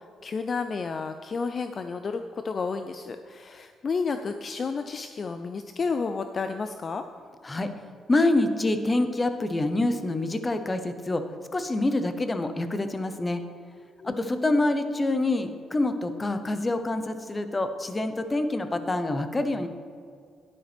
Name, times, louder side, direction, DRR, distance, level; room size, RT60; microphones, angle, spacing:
voice 1, 0.0-7.0 14.0-14.6, left 4 dB, 45° left, 8 dB, 0.4 m, -31 dB
voice 2, 8.1-11.2 11.5-13.4 14.0-19.7, left 2 dB, 20° left, 9 dB, 0.9 m, -26 dB
11.0 x 10.0 x 3.4 m, 2.1 s
cardioid pair, 90°, 0 cm